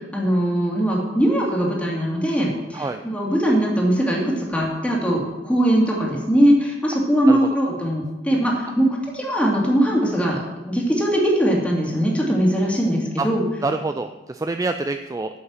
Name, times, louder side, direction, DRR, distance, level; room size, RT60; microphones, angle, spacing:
voice 1, 0.1-10.4 10.7-13.4, equal, 5° left, -3 dB, 2.4 m, -20 dB
voice 2, 13.6-15.4, right 3 dB, 20° right, 8 dB, 0.4 m, -26 dB
8.8 x 7.0 x 7.4 m, 1.1 s
head